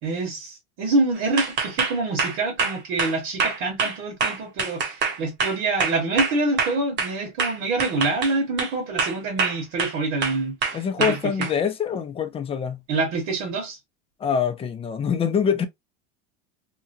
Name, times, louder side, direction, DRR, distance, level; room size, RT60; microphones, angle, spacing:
voice 1, 0.0-10.8 11.1-11.5 12.9-13.8, right 3 dB, 60° right, 1.5 m, -26 dB
sound 1, 1.4-7.1 7.4-8.7 9.0-10.0 10.2-11.5, right 4 dB, 40° right, 1.1 m, -25 dB
voice 2, 10.7-12.8 14.2-15.6, left 7 dB, 20° left, 0.5 m, -24 dB
2.9 x 2.2 x 2.7 m
supercardioid pair, 120°, 29 cm